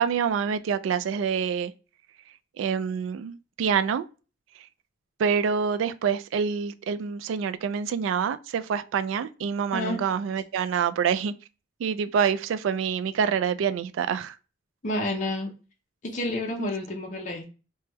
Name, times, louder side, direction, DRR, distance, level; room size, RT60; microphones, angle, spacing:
voice 1, 0.0-1.7 2.6-4.1 5.2-11.3 11.8-14.3 16.6-16.7, right 7 dB, 90° right, 0.3 m, -26 dB
voice 2, 9.7-10.0 14.8-15.5 16.0-17.5, left 1 dB, 40° left, 0.6 m, -30 dB
3.3 x 2.2 x 2.9 m
head